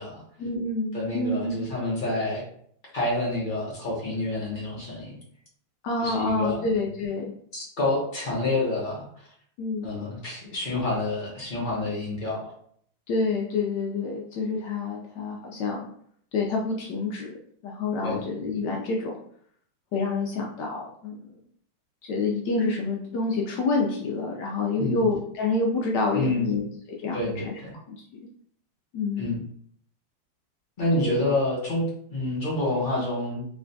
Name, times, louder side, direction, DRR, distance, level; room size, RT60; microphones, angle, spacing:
voice 1, 0.4-1.5 5.8-7.2 9.6-9.9 13.1-15.9 16.3-17.3 17.6-19.2 19.9-21.2 22.0-26.6 27.0-27.5 27.9-28.2 28.9-29.3 31.0-31.2, left 3 dB, 70° left, -1 dB, 1.0 m, -28 dB
voice 2, 0.9-2.4 2.9-5.2 6.0-6.6 7.5-9.3 9.8-12.5 18.0-18.2 24.8-25.0 26.1-26.6 27.1-27.7 29.2-29.4 30.8-33.5, left 2 dB, 45° left, -4 dB, 0.6 m, -28 dB
3.2 x 3.0 x 2.7 m, 0.62 s
omnidirectional pair, 2.2 m